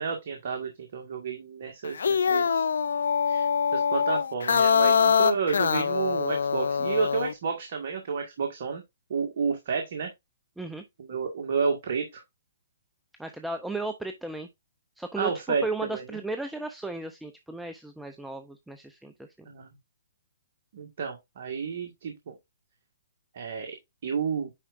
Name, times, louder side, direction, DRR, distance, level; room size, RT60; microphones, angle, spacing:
voice 1, 0.0-2.7 3.3-3.5 3.7-8.8 9.1-10.1 11.1-12.2 15.2-15.6 15.9-16.0 19.5-19.7 20.7-22.3 23.4-23.7 24.0-24.5, right 5 dB, 55° right, 1.7 m, -31 dB
sound 1, 1.8-7.3, left 6 dB, 75° left, 0.5 m, -24 dB
voice 2, 13.2-14.5 15.0-19.5, right 2 dB, 5° right, 0.6 m, -35 dB
9.7 x 4.6 x 2.5 m
hypercardioid pair, 135°, 0 cm